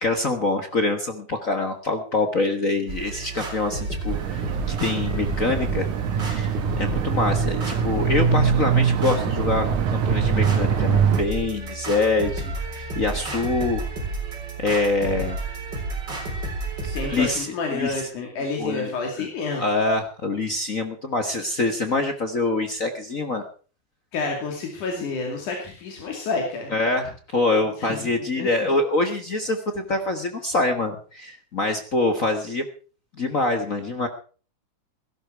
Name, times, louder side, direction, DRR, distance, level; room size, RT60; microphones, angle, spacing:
voice 1, 0.0-5.9 6.2-13.9 14.6-15.4 16.8-18.3 18.6-18.9 19.2-19.3 19.6-23.4 26.7-32.6 33.2-34.1, left 2 dB, 45° left, 6 dB, 1.0 m, -25 dB
sound 1, 2.9-17.3, right 2 dB, 35° right, 4.5 m, -31 dB
sound 2, 4.1-11.2, right 7 dB, 80° right, 2.8 m, -23 dB
voice 2, 16.9-19.6 24.1-26.7 27.8-28.0 28.4-28.5, left 3 dB, 85° left, 1 dB, 4.2 m, -29 dB
17.0 x 13.5 x 4.6 m, 0.39 s
omnidirectional pair, 3.4 m